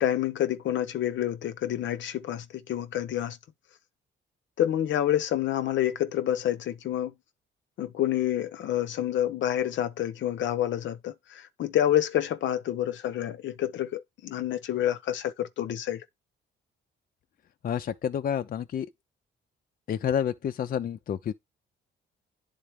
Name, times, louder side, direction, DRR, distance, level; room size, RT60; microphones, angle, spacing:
voice 1, 0.0-3.4 4.6-7.1 7.8-16.0, left 11 dB, 70° left, 0.8 m, -28 dB
voice 2, 17.6-18.9 19.9-21.3, left 8 dB, 45° left, 0.5 m, -29 dB
10.0 x 4.0 x 3.4 m
cardioid pair, 90°, 20 cm